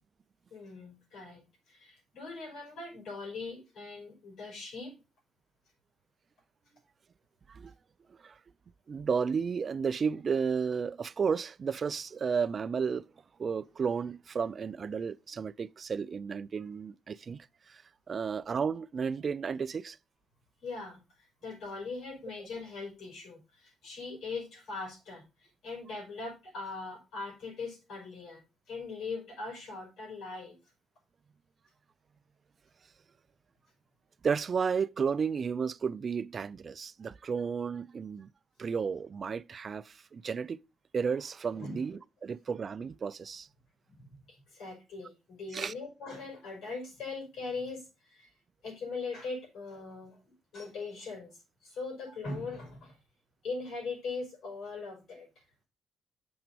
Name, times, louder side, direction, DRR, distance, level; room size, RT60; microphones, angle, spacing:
voice 1, 0.5-5.0 20.6-21.0 21.4-28.4 28.7-30.6 41.5-41.8 43.9-48.3 48.6-50.2 50.5-53.0 53.4-55.3, left 3 dB, 75° left, 5.2 m, -41 dB
voice 2, 8.9-13.1 13.4-17.8 18.1-20.0 34.2-38.3 38.6-40.6 40.9-43.5 45.5-45.7, right 6 dB, 45° right, 0.4 m, -33 dB
7.2 x 5.9 x 5.3 m
cardioid pair, 90°, 0 cm